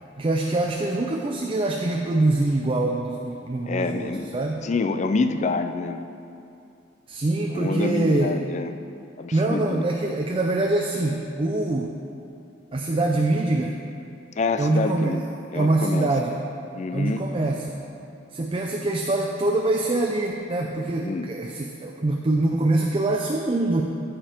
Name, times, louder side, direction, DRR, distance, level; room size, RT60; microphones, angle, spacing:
voice 1, 0.2-4.6 7.1-8.4 9.3-11.9 12.7-13.8 14.6-15.2 15.5-16.4 16.9-17.7 18.3-23.8, right 2 dB, 30° right, 1 dB, 0.4 m, -24 dB
voice 2, 3.7-4.3 4.6-6.0 7.5-8.8 9.2-9.9 14.4-15.3 15.5-16.1 16.7-17.2 21.0-21.3, left 3 dB, 35° left, 8 dB, 0.4 m, -27 dB
14.5 x 5.1 x 4.4 m, 2.6 s
head